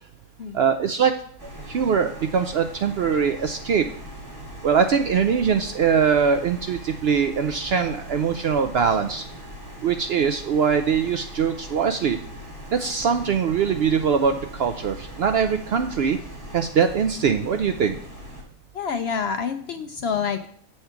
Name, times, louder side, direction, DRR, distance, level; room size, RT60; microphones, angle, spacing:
voice 1, 0.5-1.1 1.7-3.8 4.6-9.2 9.8-12.2 12.7-16.2 16.5-18.0, right 6 dB, 65° right, 7 dB, 0.6 m, -22 dB
sound 1, 1.4-18.4, equal, 45° right, 2.9 m, -40 dB
voice 2, 18.7-20.5, left 6 dB, 65° left, 8 dB, 0.6 m, -27 dB
8.0 x 4.4 x 5.7 m, 0.62 s
omnidirectional pair, 1.4 m